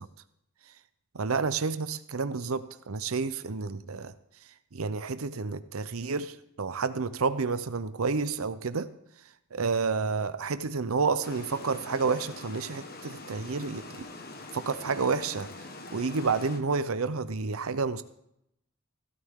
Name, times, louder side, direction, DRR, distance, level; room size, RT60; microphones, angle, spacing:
voice 1, 1.1-4.1 4.7-8.9 9.5-13.9 14.5-15.5 15.9-18.0, right 4 dB, 80° right, 13 dB, 0.7 m, -30 dB
Water, 11.2-16.6, left 3 dB, 45° left, 1.5 m, -44 dB
16.5 x 13.0 x 3.7 m, 0.78 s
head